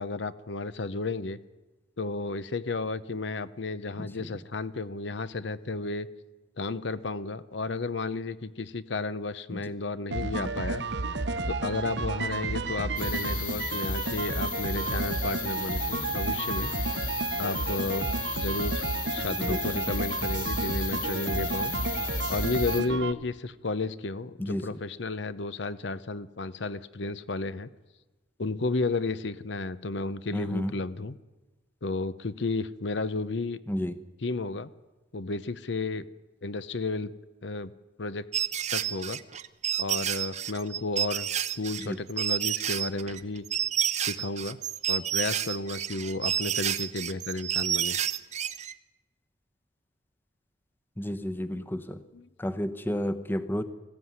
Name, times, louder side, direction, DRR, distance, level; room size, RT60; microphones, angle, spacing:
voice 1, 0.0-1.4 2.0-6.1 6.6-10.8 11.5-16.7 17.4-18.1 18.3-21.7 22.3-27.7 28.4-31.2 31.8-33.6 34.2-34.7 35.1-36.0 36.4-37.1 37.4-37.7 38.0-38.3 38.7-39.2 39.8-41.3 41.6-43.4 44.0-44.6 44.9-48.0 52.1-52.3, left 3 dB, 70° left, 15 dB, 0.8 m, -32 dB
sound 1, 10.1-23.1, right 3 dB, 65° right, 1.0 m, -31 dB
sound 2, 13.0-22.8, left 9 dB, 45° left, 2.3 m, -36 dB
voice 2, 24.4-24.8 30.3-30.8 33.7-34.0 41.8-42.0 51.0-52.0 52.4-53.6, equal, 10° left, 10 dB, 0.9 m, -31 dB
sound 3, 38.3-48.7, right 10 dB, 40° right, 0.7 m, -30 dB
20.0 x 15.5 x 9.5 m, 1.1 s
head